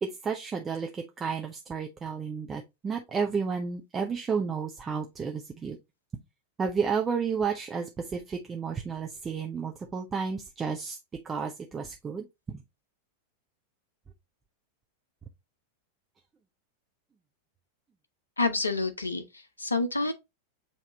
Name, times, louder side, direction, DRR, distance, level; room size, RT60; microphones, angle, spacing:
voice 1, 0.0-5.8 6.6-11.0 11.2-12.6, right 6 dB, 20° right, 0.5 m, -32 dB
voice 2, 18.4-20.1, left 3 dB, 80° left, 0.6 m, -28 dB
6.8 x 2.8 x 2.7 m
figure-of-eight pair, 90°, 0 cm